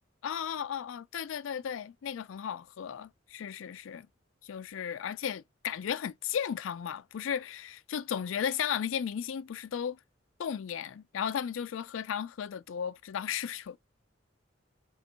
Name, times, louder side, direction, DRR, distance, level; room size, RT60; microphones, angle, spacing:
voice 1, 0.2-4.1 4.4-10.0 10.4-13.8, left 8 dB, 85° left, 0.4 m, -35 dB
4.4 x 3.1 x 2.5 m
head